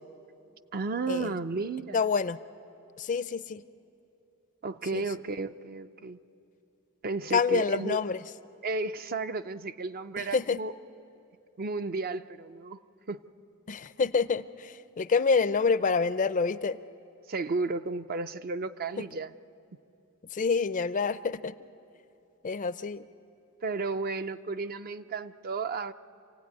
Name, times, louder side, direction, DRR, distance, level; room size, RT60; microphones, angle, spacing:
voice 1, 0.7-2.0 4.6-6.2 7.0-8.0 8.6-10.7 11.6-12.8 13.1-13.2 17.3-19.3 23.6-25.9, right 3 dB, 45° right, 11 dB, 0.5 m, -33 dB
voice 2, 1.9-2.4 3.0-3.6 4.9-5.0 7.3-8.2 10.2-10.6 13.7-16.8 19.0-19.1 20.3-21.5 22.4-23.1, left 5 dB, 35° left, 14 dB, 0.5 m, -27 dB
27.5 x 16.5 x 9.4 m, 2.7 s
head